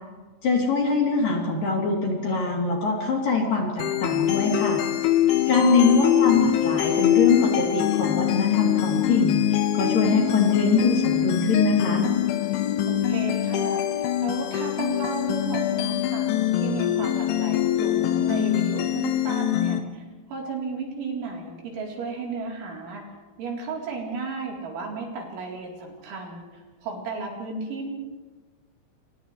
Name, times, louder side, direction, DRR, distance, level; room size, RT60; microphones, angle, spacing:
voice 1, 0.4-4.8 5.5-9.4 9.7-12.0, left 4 dB, 45° left, -2 dB, 4.6 m, -23 dB
sound 1, 3.8-19.8, left 12 dB, 75° left, 3.5 m, -24 dB
voice 2, 5.2-5.8 12.8-23.0 23.4-27.9, right 4 dB, 65° right, -2 dB, 6.2 m, -34 dB
29.5 x 29.0 x 3.3 m, 1.3 s
omnidirectional pair, 5.8 m